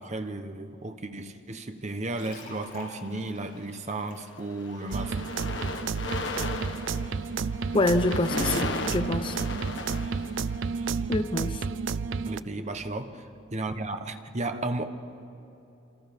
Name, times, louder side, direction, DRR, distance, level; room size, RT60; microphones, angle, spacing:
voice 1, 0.0-5.2 12.2-14.9, right 2 dB, 40° right, 7 dB, 1.1 m, -34 dB
sound 1, 2.0-5.8, left 2 dB, 50° left, 5.2 m, -49 dB
sound 2, 2.1-3.1 3.9-4.1 4.4-10.9, left 3 dB, 70° left, 1.5 m, -36 dB
sound 3, 4.9-12.4, right 5 dB, 75° right, 0.5 m, -31 dB
voice 2, 7.7-9.4 11.1-11.6, left 2 dB, 25° left, 11 dB, 0.6 m, -26 dB
27.5 x 26.0 x 5.3 m, 2.9 s
head